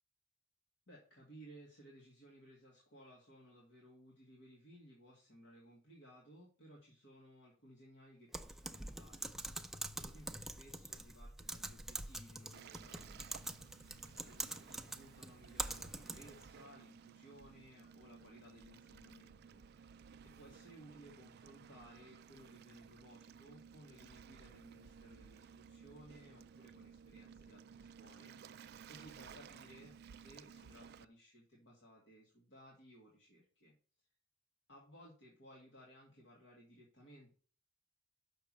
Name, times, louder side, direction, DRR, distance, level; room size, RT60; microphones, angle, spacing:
voice 1, 0.9-20.0 20.2-33.7 34.7-37.3, equal, 70° left, -3 dB, 2.4 m, -60 dB
Typing, 8.3-16.4, right 1 dB, ahead, 0.5 m, -45 dB
Waves surf, 12.5-31.0, right 6 dB, 60° right, 0.4 m, -57 dB
6.6 x 5.9 x 6.2 m, 0.41 s
head